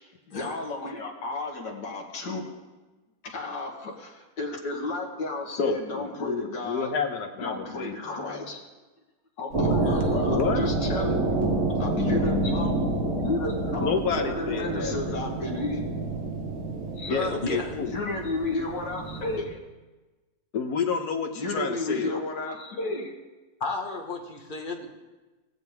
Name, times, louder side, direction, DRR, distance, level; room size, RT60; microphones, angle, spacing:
voice 1, 0.3-2.5 3.2-6.9 7.4-8.6 9.4-11.3 11.8-12.7 13.2-15.8 17.0-17.4 17.8-19.6 21.3-23.1, left 2 dB, 85° left, -1 dB, 2.3 m, -32 dB
voice 2, 5.6-7.9 8.2-8.4 10.3-10.7 13.8-15.2 17.1-17.9 20.5-22.2, left 5 dB, 65° left, 5 dB, 1.5 m, -29 dB
sound 1, 9.5-19.4, right 2 dB, 50° right, 3.1 m, -28 dB
voice 3, 9.7-10.2 17.2-17.7 23.6-24.9, left 3 dB, 30° left, 2 dB, 1.2 m, -34 dB
20.0 x 7.4 x 3.5 m, 1.2 s
omnidirectional pair, 1.9 m